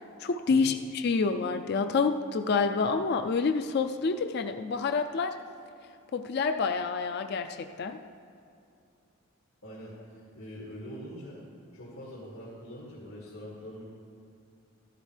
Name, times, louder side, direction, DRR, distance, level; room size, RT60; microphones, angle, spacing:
voice 1, 0.2-5.3 6.1-8.0, left 4 dB, 50° left, 7 dB, 0.4 m, -28 dB
voice 2, 9.6-11.4 11.7-13.8, equal, 85° left, -7 dB, 2.2 m, -44 dB
14.0 x 11.5 x 3.3 m, 2.4 s
head